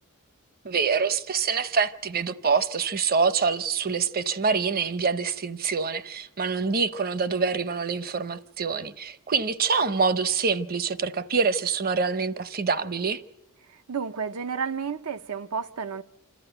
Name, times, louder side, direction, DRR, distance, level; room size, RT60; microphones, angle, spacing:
voice 1, 0.6-13.2, right 5 dB, 45° right, 0.8 m, -25 dB
voice 2, 13.7-16.0, right 6 dB, 85° right, 0.8 m, -31 dB
26.5 x 13.5 x 7.9 m
head